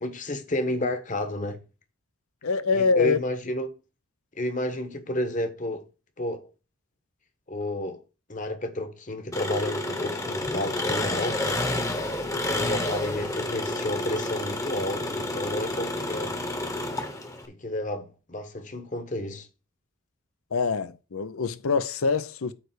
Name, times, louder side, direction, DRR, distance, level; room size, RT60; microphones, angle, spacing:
voice 1, 0.0-1.6 2.7-3.7 4.3-5.8 6.2-6.4 7.5-8.0 8.3-11.7 12.2-16.4 17.5-19.5, left 1 dB, 35° left, 1.1 m, -31 dB
voice 2, 2.4-3.2 20.5-22.5, left 4 dB, 80° left, 0.7 m, -24 dB
Engine, 9.3-17.4, left 1 dB, 15° left, 1.0 m, -30 dB
8.8 x 3.4 x 6.6 m
head